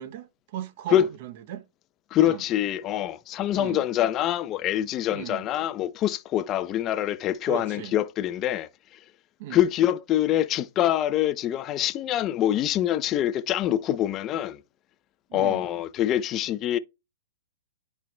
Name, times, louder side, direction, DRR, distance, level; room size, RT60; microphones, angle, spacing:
voice 1, 0.0-1.6 2.2-2.4 3.5-3.8 5.1-5.4 7.4-7.9 9.4-9.6 15.3-15.6, right 12 dB, 50° right, 0.7 m, -37 dB
voice 2, 2.1-8.7 9.5-14.6 15.3-16.8, left 12 dB, 25° left, 0.5 m, -25 dB
11.0 x 4.5 x 2.2 m
hypercardioid pair, 140°, 0 cm